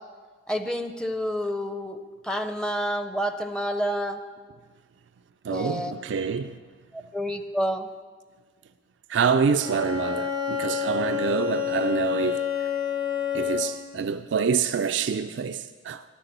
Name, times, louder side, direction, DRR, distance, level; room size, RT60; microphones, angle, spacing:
voice 1, 0.5-4.2 5.5-5.9 6.9-7.9, equal, 5° left, 0.6 m, -29 dB
voice 2, 5.4-6.6 9.1-12.4 13.3-16.0, right 6 dB, 70° right, 0.4 m, -26 dB
Bowed string instrument, 9.5-13.9, left 9 dB, 75° left, 4.5 m, -28 dB
10.5 x 9.8 x 6.7 m
head